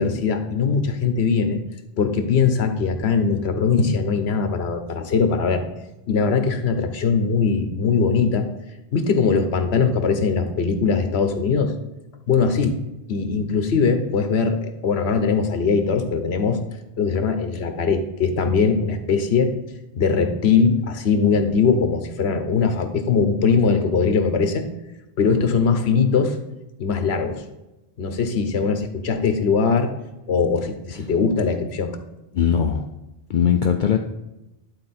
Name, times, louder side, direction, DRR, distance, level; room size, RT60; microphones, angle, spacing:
voice 1, 0.0-1.6 2.0-5.6 6.1-8.5 8.9-11.7 12.3-12.8 13.1-16.6 17.0-19.5 19.9-24.6 25.2-26.4 26.8-27.4 28.0-29.9 30.3-32.0, left 5 dB, 80° left, 8 dB, 1.2 m, -21 dB
voice 2, 32.3-32.9 33.3-34.0, left 8 dB, 60° left, 5 dB, 0.6 m, -20 dB
11.0 x 4.2 x 4.2 m, 0.97 s
omnidirectional pair, 1.1 m